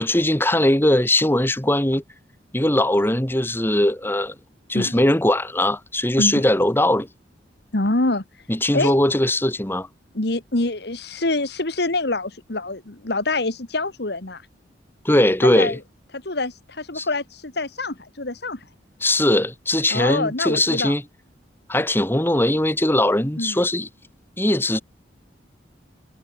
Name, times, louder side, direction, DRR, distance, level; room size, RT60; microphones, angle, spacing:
voice 1, 0.0-2.0 2.5-4.3 4.7-7.1 8.5-9.9 15.0-15.8 17.0-17.1 19.0-21.0 21.7-23.9 24.4-24.8, left 1 dB, 10° left, 2.0 m, -20 dB
voice 2, 7.7-8.2 8.7-9.0 10.1-14.4 15.4-15.8 16.1-18.7 19.3-19.4 19.9-20.9 23.4-23.6, left 2 dB, 65° left, 2.0 m, -25 dB
head